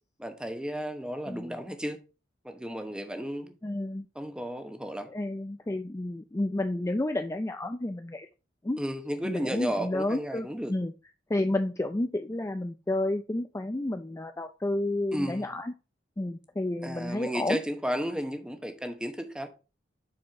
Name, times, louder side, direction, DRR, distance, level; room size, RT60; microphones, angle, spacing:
voice 1, 0.2-2.0 2.4-3.5 4.1-5.1 8.8-10.8 15.1-15.5 16.8-19.5, equal, 5° right, 1.0 m, -33 dB
voice 2, 1.3-1.6 3.6-4.0 5.1-8.3 8.6-8.8 9.2-10.9 11.3-15.7 16.2-17.6, left 1 dB, 15° left, 0.4 m, -31 dB
7.6 x 4.4 x 4.4 m
head